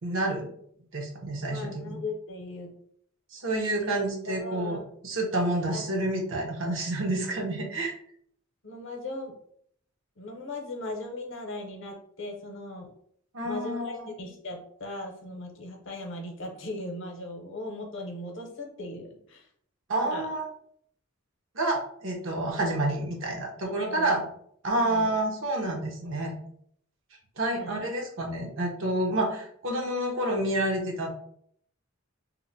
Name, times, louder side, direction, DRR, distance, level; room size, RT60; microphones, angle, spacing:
voice 1, 0.0-0.5 0.9-2.0 3.3-7.9 13.3-14.1 19.9-20.5 21.5-24.2 24.6-26.3 27.4-31.1, right 1 dB, 65° right, 1 dB, 0.8 m, -29 dB
voice 2, 1.5-2.7 3.5-3.9 4.3-4.8 5.7-5.8 8.6-9.3 10.2-12.9 13.4-19.5 19.9-20.3 23.6-24.2 24.8-25.1 27.5-27.9, left 2 dB, 60° left, 2 dB, 0.7 m, -38 dB
2.8 x 2.1 x 3.9 m, 0.65 s
head